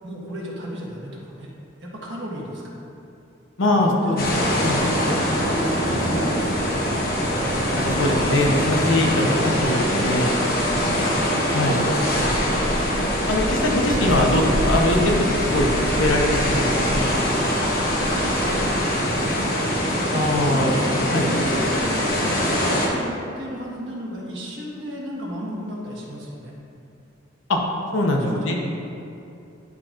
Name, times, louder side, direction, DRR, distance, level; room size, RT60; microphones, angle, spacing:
voice 1, 0.0-1.5 1.8-2.6 3.6-6.9 10.8-11.2 18.1-19.8 20.4-26.5 28.2-28.5, equal, 65° right, -4 dB, 1.4 m, -34 dB
voice 2, 3.6-4.2 4.6-4.8 7.7-10.3 11.5-11.8 13.3-15.7 15.9-17.1 20.1-20.7 21.1-21.3 27.5-27.6 27.9-28.5, left 1 dB, 80° left, 0 dB, 1.0 m, -22 dB
sound 1, 4.2-22.9, equal, 50° left, 1.2 m, -23 dB
sound 2, 12.1-18.7, equal, 10° right, 0.5 m, -31 dB
11.0 x 5.9 x 2.5 m, 2.7 s
head